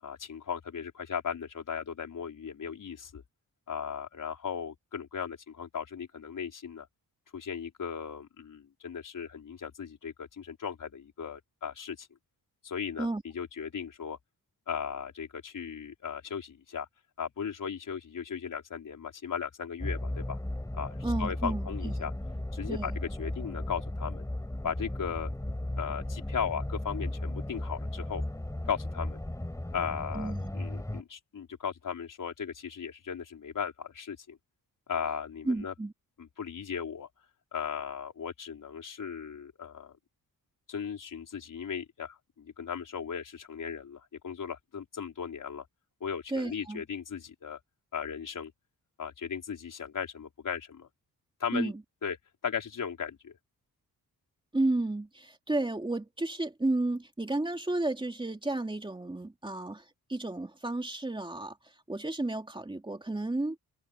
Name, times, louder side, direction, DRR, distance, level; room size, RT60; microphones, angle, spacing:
voice 1, 0.0-3.2 3.7-6.9 7.3-12.1 12.6-14.2 14.7-16.9 17.2-20.4 20.7-22.1 22.5-24.3 24.6-25.3 25.8-28.2 28.6-29.2 29.7-34.4 34.9-35.7 36.2-37.1 37.5-40.0 40.7-45.6 46.0-47.6 47.9-48.5 49.0-50.9 51.4-51.7 52.0-52.2 52.4-53.4, left 7 dB, 55° left, 5.0 m, -37 dB
sound 1, 19.8-31.0, left 1 dB, 10° left, 5.1 m, -35 dB
voice 2, 21.0-21.9 22.7-22.9 30.1-30.5 35.5-35.9 46.3-46.8 51.5-51.8 54.5-63.6, right 2 dB, 15° right, 2.8 m, -32 dB
wide cardioid pair, 145°, 37 cm